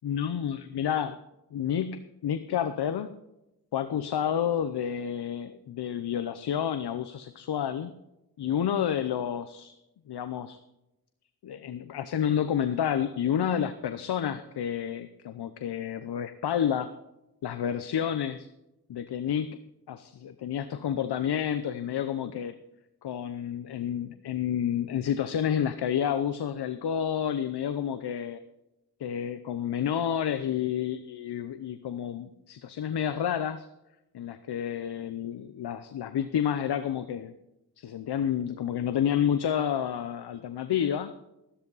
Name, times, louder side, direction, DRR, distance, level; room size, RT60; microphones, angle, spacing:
voice 1, 0.0-1.2 1.5-3.1 3.7-7.9 8.4-9.7 10.1-10.6 11.4-16.9 17.4-18.5 18.9-19.6 19.9-22.5 23.0-28.4 29.0-33.7 34.1-37.3 37.8-41.1, left 9 dB, 85° left, 10 dB, 0.7 m, -30 dB
13.5 x 13.0 x 4.0 m, 0.91 s
wide cardioid pair, 85°, 38 cm